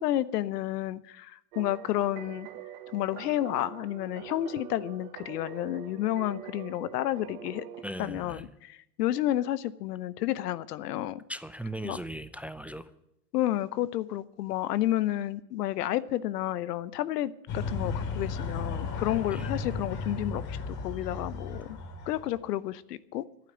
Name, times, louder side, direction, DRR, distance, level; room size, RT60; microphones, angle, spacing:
voice 1, 0.0-2.5 2.9-7.7 8.0-11.2 11.8-12.0 13.3-21.8 22.1-23.2, left 13 dB, 75° left, 17 dB, 0.9 m, -31 dB
sound 1, 1.5-7.8, right 12 dB, 65° right, 1.4 m, -45 dB
voice 2, 7.8-8.5 11.3-12.9 19.3-19.5, right 1 dB, 5° right, 12 dB, 0.6 m, -38 dB
sound 2, 17.5-22.3, left 4 dB, 50° left, 3.1 m, -35 dB
11.5 x 9.1 x 8.8 m, 0.79 s
hypercardioid pair, 95°, 47 cm